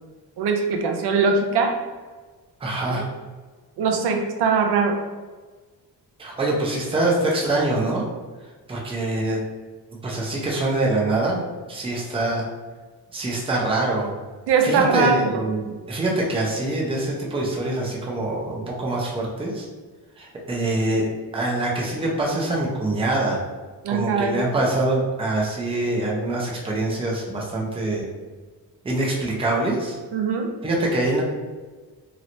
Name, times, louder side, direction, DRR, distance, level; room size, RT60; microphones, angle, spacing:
voice 1, 0.4-1.8 2.9-3.0 3.8-5.0 14.5-15.4 23.8-24.4 30.1-30.5, right 5 dB, 75° right, 4 dB, 0.6 m, -21 dB
voice 2, 2.6-3.0 6.2-8.0 8.7-9.4 10.0-11.4 11.7-12.5 13.1-14.1 14.6-19.7 20.2-21.1 21.3-23.4 23.9-28.1 28.8-30.0 30.6-31.2, right 2 dB, 15° right, -2 dB, 0.5 m, -24 dB
3.0 x 2.9 x 2.6 m, 1.4 s
wide cardioid pair, 160°, 40 cm